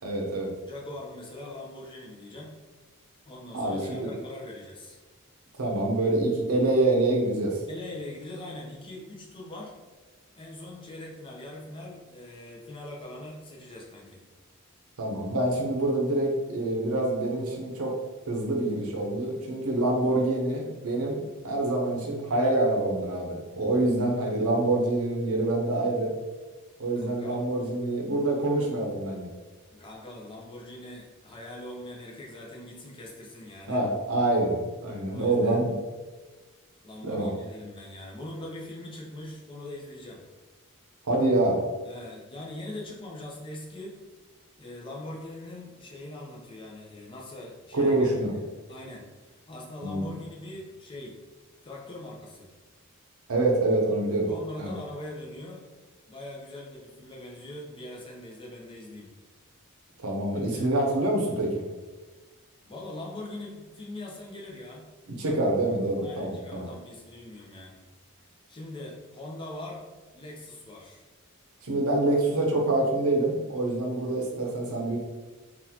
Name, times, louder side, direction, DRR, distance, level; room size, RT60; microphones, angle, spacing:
voice 1, 0.0-0.5 3.5-4.1 5.5-7.6 15.0-18.0 18.3-26.1 26.8-29.4 33.7-35.7 37.0-37.3 41.0-41.6 47.7-48.3 49.8-50.1 53.3-54.3 54.6-54.7 60.0-61.7 65.2-66.7 71.6-75.0, right 2 dB, 75° right, 0 dB, 0.7 m, -26 dB
voice 2, 0.6-2.6 3.2-5.0 7.7-9.7 10.4-14.2 27.0-27.4 29.7-33.8 35.1-35.6 36.8-40.2 41.9-44.0 44.6-51.2 51.6-52.5 54.3-55.7 56.1-59.1 60.3-60.6 62.6-64.9 66.0-67.8 68.5-71.0, left 1 dB, 25° left, -1 dB, 0.5 m, -42 dB
3.8 x 2.4 x 2.8 m, 1.3 s
head